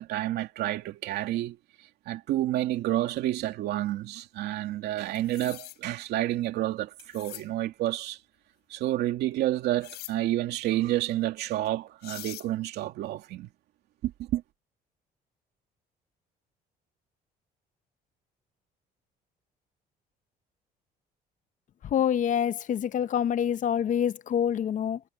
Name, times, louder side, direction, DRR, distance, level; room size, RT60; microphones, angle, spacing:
voice 1, 0.0-1.6 2.1-8.2 8.7-13.5 14.0-14.4, right 14 dB, 80° right, 2.6 m, -29 dB
sound 1, 5.1-5.8 7.0-7.5 9.8-10.1 11.6-11.7 12.0-12.5, left 16 dB, 80° left, 6.5 m, -43 dB
voice 2, 21.8-25.0, left 9 dB, 50° left, 0.8 m, -26 dB
cardioid pair, 110°, 17 cm